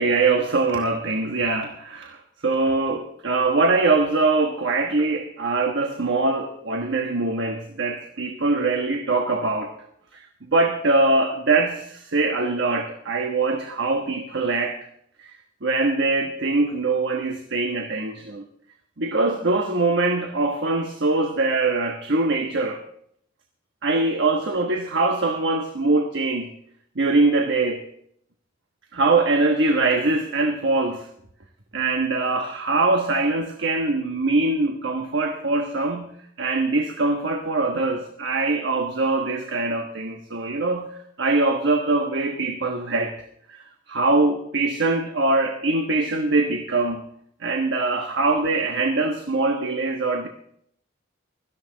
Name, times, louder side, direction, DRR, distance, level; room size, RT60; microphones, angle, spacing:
voice 1, 0.0-9.7 10.1-10.3 10.5-14.8 15.2-15.3 15.6-18.5 19.0-22.8 23.8-26.5 26.9-27.9 28.9-31.1 31.7-43.2 43.5-47.0 47.4-50.3, right 3 dB, 65° right, 1.2 m, -23 dB
17.0 x 13.5 x 3.9 m
head